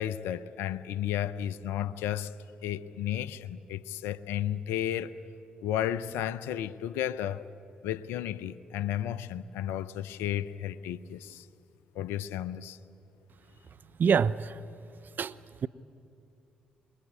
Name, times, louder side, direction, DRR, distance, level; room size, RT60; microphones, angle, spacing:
voice 1, 0.0-2.3 2.6-5.2 5.6-7.4 7.8-11.5 11.9-12.8, left 11 dB, 75° left, 0.7 m, -33 dB
voice 2, 14.0-14.5 15.2-15.7, right 6 dB, 50° right, 0.7 m, -26 dB
26.5 x 21.5 x 9.7 m
hypercardioid pair, 45°, 4 cm